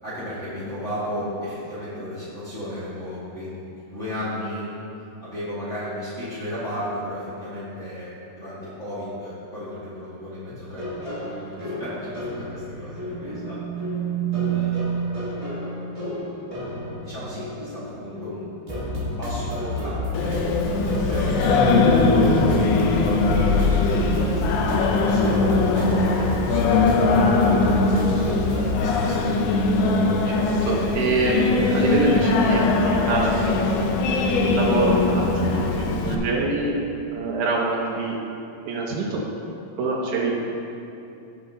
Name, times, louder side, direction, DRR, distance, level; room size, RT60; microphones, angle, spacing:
voice 1, 0.0-4.6 5.2-8.1 8.4-12.0 12.5-13.6 14.4-14.9 17.0-20.4 21.1-23.2 25.0-28.4 28.7-29.2, equal, 25° left, -11 dB, 1.9 m, -34 dB
sound 1, 10.5-28.8, left 1 dB, 20° right, 0.8 m, -31 dB
sound 2, 13.0-15.5, right 10 dB, 50° right, 1.7 m, -28 dB
Singing, 20.1-36.2, left 3 dB, 75° left, 2.5 m, -21 dB
voice 2, 30.3-33.7 34.2-36.8 37.1-38.2 38.6-39.2 39.8-40.4, right 3 dB, 80° right, -2 dB, 1.7 m, -25 dB
16.5 x 5.7 x 3.9 m, 2.8 s
omnidirectional pair, 4.8 m